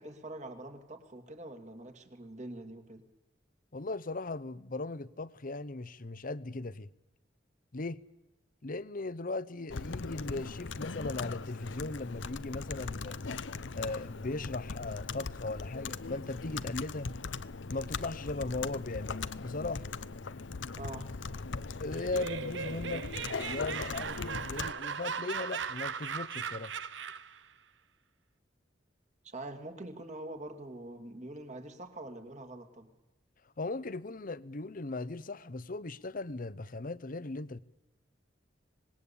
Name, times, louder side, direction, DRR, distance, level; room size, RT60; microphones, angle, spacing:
voice 1, 0.0-3.0 20.8-21.1 29.2-32.9, right 1 dB, 40° right, 2.6 m, -44 dB
voice 2, 3.7-6.9 7.7-8.0 8.6-13.2 13.8-17.1 17.7-19.8 21.8-23.1 23.5-26.7 33.6-37.6, left 2 dB, 50° left, 0.9 m, -38 dB
Computer keyboard, 9.7-24.7, left 4 dB, 90° left, 0.8 m, -39 dB
Laughter, 21.9-27.4, right 6 dB, 75° right, 0.9 m, -38 dB
25.5 x 19.5 x 8.6 m
head